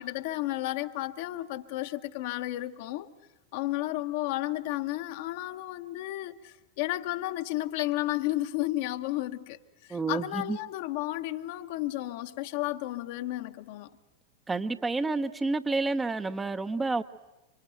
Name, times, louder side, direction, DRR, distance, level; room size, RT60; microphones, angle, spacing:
voice 1, 0.0-3.1 3.5-13.9, left 16 dB, 50° left, 1.0 m, -33 dB
voice 2, 9.9-10.6 14.5-17.0, right 3 dB, 10° right, 0.8 m, -29 dB
26.5 x 25.5 x 7.9 m
figure-of-eight pair, 90°, 0 cm